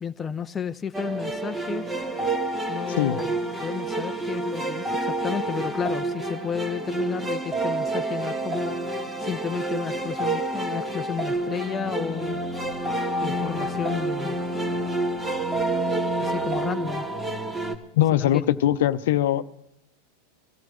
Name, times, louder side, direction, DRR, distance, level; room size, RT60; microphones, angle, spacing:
voice 1, 0.0-1.8 2.7-8.8 9.2-12.4 13.2-14.4 16.2-17.1 18.1-18.4, left 7 dB, 20° left, 0.6 m, -32 dB
sound 1, 0.9-17.7, right 2 dB, 15° right, 1.8 m, -28 dB
voice 2, 17.9-19.5, left 12 dB, 70° left, 0.7 m, -21 dB
24.0 x 14.5 x 3.1 m
hypercardioid pair, 100°, 0 cm